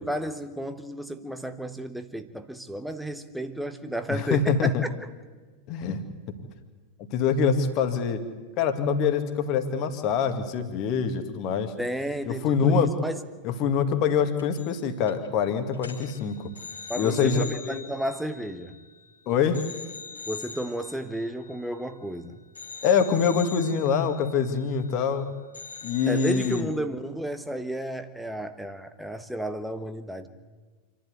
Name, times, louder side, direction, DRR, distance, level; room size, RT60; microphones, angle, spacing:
voice 1, 0.0-4.7 11.8-13.2 16.9-18.8 20.3-22.4 26.1-30.3, equal, ahead, 1.3 m, -32 dB
voice 2, 4.1-4.8 5.7-6.0 7.1-8.2 8.6-11.7 12.3-12.9 13.4-16.5 17.0-17.9 19.3-19.6 22.8-25.3 25.8-26.7, left 6 dB, 40° left, 2.1 m, -25 dB
sound 1, 14.4-14.8 15.1-15.3 15.7-19.1 19.5-22.1 22.5-25.2 25.5-26.6, left 4 dB, 75° left, 2.7 m, -43 dB
27.5 x 11.5 x 9.5 m
figure-of-eight pair, 90°, 0 cm